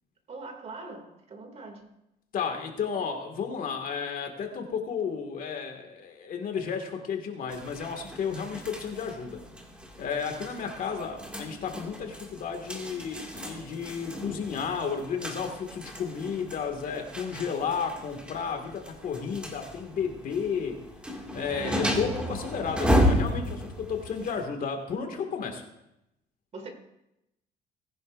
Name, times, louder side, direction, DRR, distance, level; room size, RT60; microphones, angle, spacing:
voice 1, 0.3-2.0 26.5-26.7, right 3 dB, 40° right, 2.6 m, -42 dB
voice 2, 2.3-9.4 10.0-20.8 21.3-25.6, left 6 dB, 55° left, 2.2 m, -32 dB
sound 1, 7.5-24.4, equal, 5° right, 2.3 m, -33 dB
19.5 x 10.5 x 2.6 m
cardioid pair, 110°, 17 cm